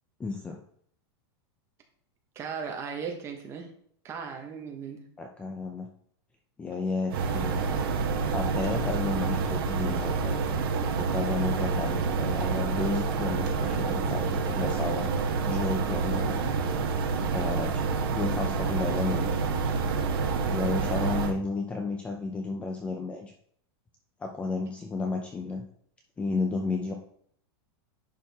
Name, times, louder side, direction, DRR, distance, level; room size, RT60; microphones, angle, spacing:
voice 1, 0.2-0.6 5.2-5.9 6.6-7.6 8.3-10.5 11.0-15.1 15.4-16.5 17.2-19.3 19.9-20.0 20.5-23.3 24.2-25.7 26.2-26.9, left 3 dB, 10° left, 2 dB, 0.5 m, -32 dB
voice 2, 2.3-3.7 4.0-5.0, right 6 dB, 20° right, 3 dB, 1.1 m, -37 dB
sound 1, 7.1-21.3, right 4 dB, 55° right, 1.1 m, -28 dB
10.5 x 4.6 x 3.5 m, 0.63 s
supercardioid pair, 175°, 14 cm